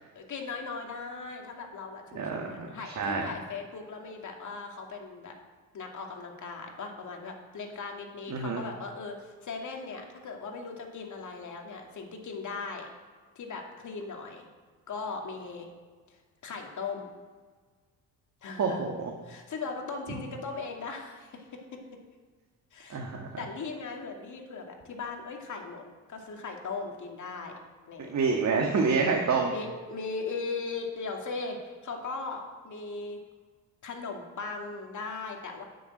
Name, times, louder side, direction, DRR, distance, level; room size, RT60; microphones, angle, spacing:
voice 1, 0.1-5.3 5.7-12.9 13.4-14.5 14.9-15.7 16.1-16.2 16.4-17.1 18.4-18.9 19.2-21.8 22.7-23.0 23.4-27.6 27.9-28.1 29.5-33.2 33.8-35.6, left 4 dB, 50° left, 2 dB, 2.5 m, -38 dB
voice 2, 2.1-2.7 3.0-3.2 8.3-8.6 18.6-19.1 22.9-23.4 28.0-29.5, right 4 dB, 45° right, 1 dB, 1.7 m, -28 dB
10.0 x 7.1 x 7.8 m, 1.5 s
supercardioid pair, 70°, 37 cm